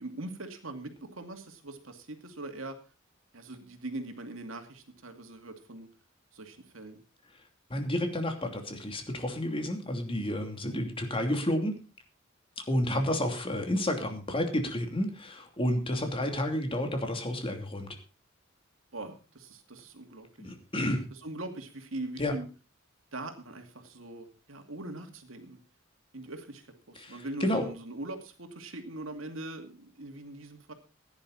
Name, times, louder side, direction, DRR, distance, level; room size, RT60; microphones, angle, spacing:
voice 1, 0.0-2.8 3.3-5.9 6.3-7.0 10.7-10.9 18.9-20.5 21.1-22.5 23.1-25.6 26.1-30.7, right 2 dB, 80° right, 6 dB, 2.3 m, -42 dB
voice 2, 7.7-11.8 12.7-17.9 20.4-21.0 22.2-22.3 27.0-27.7, left 1 dB, 25° left, 4 dB, 2.8 m, -30 dB
16.5 x 10.5 x 4.1 m, 0.33 s
head